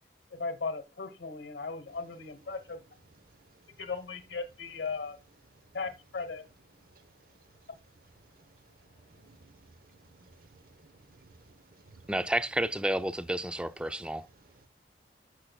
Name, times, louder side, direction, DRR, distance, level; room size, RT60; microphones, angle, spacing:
voice 1, 0.3-2.8 3.8-5.2 5.7-6.4, left 4 dB, 90° left, 1.1 m, -37 dB
voice 2, 3.3-3.8 5.6-5.7 6.8-7.7 8.2-12.1 14.3-14.7, right 3 dB, 55° right, 0.9 m, -59 dB
voice 3, 12.1-14.3, right 1 dB, 5° right, 0.4 m, -31 dB
14.5 x 6.7 x 2.3 m
head